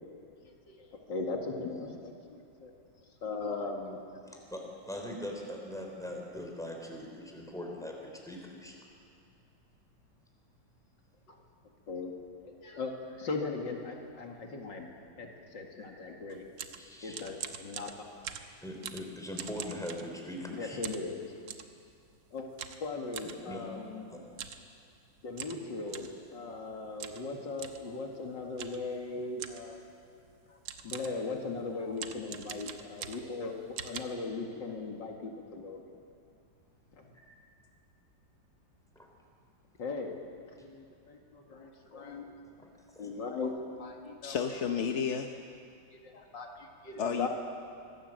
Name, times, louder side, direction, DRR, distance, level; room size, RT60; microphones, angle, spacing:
voice 1, 1.1-2.1 2.6-2.7 3.2-4.0 11.9-12.1 12.4-12.9 13.2-14.9 15.2-15.3 15.5-16.5 17.0-17.9 20.5-21.3 22.3-22.5 22.8-24.0 25.2-26.1 26.3-29.8 30.8-33.6 33.8-35.8 39.8-40.2 40.6-42.3 43.0-44.4 46.0-46.5 46.8-47.3, left 3 dB, 75° left, 1 dB, 2.7 m, -38 dB
voice 2, 4.3-8.8 15.8-15.9 16.7-17.2 18.6-20.8 23.2-23.7 24.1-24.2 39.0-39.1 40.6-40.7 42.4-43.1 46.9-47.0, equal, ahead, 0 dB, 3.8 m, -42 dB
sound 1, 16.3-20.5 20.8-21.7 22.6-23.4 24.3-24.6 24.9-25.0 25.4-26.2 27.0-27.3 27.6-27.9 28.6-28.9 29.4-29.7 30.3-30.4 30.7-31.2 31.9-33.4 33.8-34.0, right 8 dB, 85° right, 1.8 m, -43 dB
voice 3, 44.2-45.3 47.0-47.3, left 6 dB, 50° left, 4 dB, 0.9 m, -31 dB
25.0 x 16.5 x 7.8 m, 2.4 s
omnidirectional pair, 2.0 m